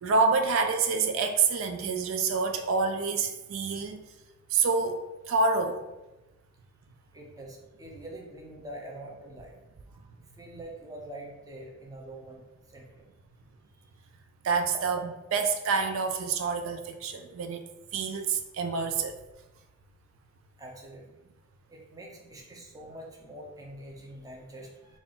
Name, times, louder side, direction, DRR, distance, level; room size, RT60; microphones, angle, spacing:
voice 1, 0.0-4.0 4.5-5.0 5.3-5.8 14.4-15.0 15.3-19.2, right 4 dB, 80° right, 6 dB, 0.4 m, -27 dB
voice 2, 7.1-9.5 9.9-10.0 10.4-13.1 20.6-21.1 21.7-25.0, right 1 dB, 15° right, -1 dB, 0.5 m, -45 dB
3.7 x 2.4 x 3.7 m, 1.0 s
head